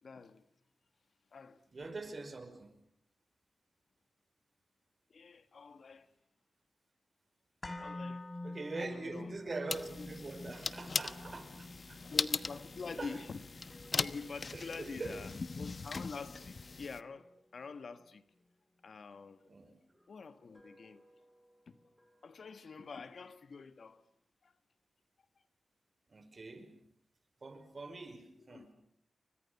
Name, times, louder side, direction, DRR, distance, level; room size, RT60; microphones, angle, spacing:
voice 1, 0.0-0.4 1.3-1.9 5.1-6.1 7.8-8.3 8.8-9.3 10.0-10.1 12.1-15.3 15.6-18.2 18.8-19.5 20.1-21.0 21.7-21.8 22.2-24.0 24.4-24.5 28.4-28.7, left 4 dB, 70° left, 1.6 m, -46 dB
voice 2, 1.7-2.7 8.4-12.0 13.0-13.2 14.5-15.3 19.5-19.8 26.1-26.8 27.4-28.7, right 3 dB, 50° right, 5.6 m, -44 dB
sound 1, 7.6-15.7 16.0-16.1, left 2 dB, 35° left, 5.6 m, -48 dB
sound 2, 9.7-17.0, left 4 dB, 55° left, 1.2 m, -39 dB
sound 3, 11.0-19.1 19.9-23.4, equal, ahead, 5.7 m, -65 dB
30.0 x 24.5 x 7.1 m
cardioid pair, 50°, 0 cm